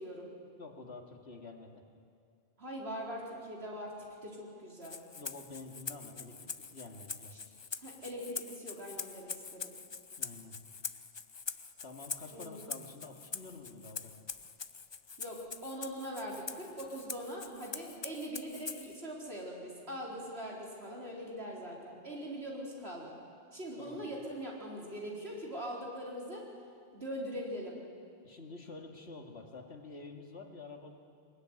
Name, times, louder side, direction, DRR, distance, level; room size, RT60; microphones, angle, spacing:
voice 1, 0.4-1.8 5.2-7.4 10.2-10.6 11.8-14.1 23.8-24.0 28.2-31.0, left 3 dB, 70° left, 2 dB, 2.6 m, -49 dB
voice 2, 2.6-3.9 4.2-5.0 7.3-7.4 7.8-9.7 12.3-12.7 15.2-23.1 23.5-26.4 26.9-27.8, equal, 65° right, -3 dB, 4.6 m, -42 dB
Rattle (instrument), 4.8-19.0, left 5 dB, 35° left, 0.5 m, -44 dB
22.0 x 20.5 x 9.7 m, 2.3 s
omnidirectional pair, 1.1 m